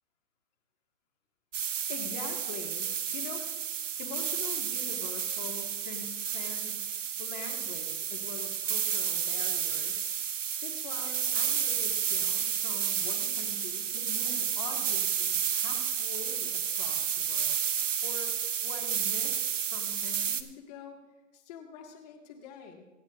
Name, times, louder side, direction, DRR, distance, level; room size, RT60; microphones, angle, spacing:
sound 1, 1.5-20.4, right 8 dB, 75° right, 1.0 m, -31 dB
voice 1, 1.9-3.5 4.0-6.8 7.2-10.0 10.6-17.6 18.0-18.3 18.6-21.0 21.3-22.8, left 6 dB, 30° left, 2 dB, 2.0 m, -44 dB
24.5 x 9.1 x 2.6 m, 1.1 s
hypercardioid pair, 150°, 38 cm